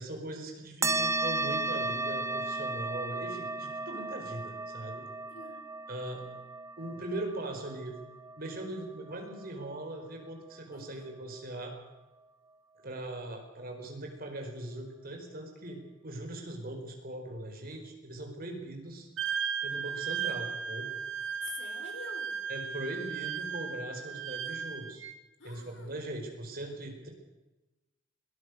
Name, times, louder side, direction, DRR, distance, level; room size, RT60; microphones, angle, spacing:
voice 1, 0.0-5.0 5.9-6.2 6.8-7.9 8.4-11.7 12.8-19.1 19.6-20.9 22.5-25.0 25.4-27.1, right 1 dB, 45° right, 3 dB, 4.9 m, -40 dB
sound 1, 0.8-9.7, right 2 dB, 15° right, 0.9 m, -35 dB
voice 2, 5.3-5.6 10.7-11.1 21.4-22.4 25.4-26.1, left 5 dB, 60° left, 5 dB, 4.1 m, -47 dB
Wind instrument woodwind instrument, 19.2-25.2, right 7 dB, 70° right, 2.0 m, -36 dB
22.0 x 19.0 x 6.7 m, 1.1 s
head